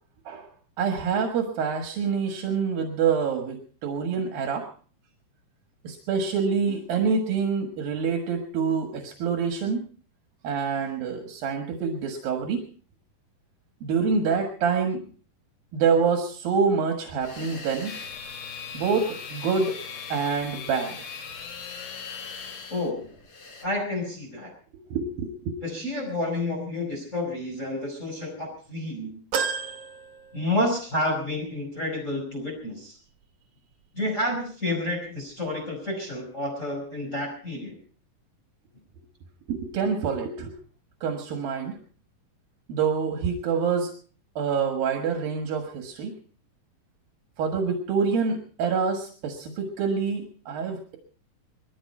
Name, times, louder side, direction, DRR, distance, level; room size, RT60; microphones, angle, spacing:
voice 1, 0.8-4.7 5.8-9.9 10.4-12.7 13.8-15.1 15.7-18.0 18.7-19.8 20.1-21.0 24.9-25.6 39.5-40.5 41.0-41.8 42.7-43.9 44.4-46.1 47.4-51.0, right 5 dB, 85° right, 4 dB, 3.4 m, -26 dB
sound 1, 17.2-23.7, left 3 dB, 40° left, 4.0 m, -47 dB
sound 2, 17.9-22.9, left 6 dB, 80° left, 3.9 m, -39 dB
voice 2, 22.7-23.1 23.6-24.5 25.6-29.1 30.3-33.0 33.9-37.8, left 1 dB, 20° left, 0 dB, 5.0 m, -30 dB
sound 3, 29.3-31.0 31.4-31.5 32.7-32.8, right 6 dB, 60° right, 1.6 m, -32 dB
21.0 x 15.0 x 4.4 m, 0.42 s
omnidirectional pair, 4.1 m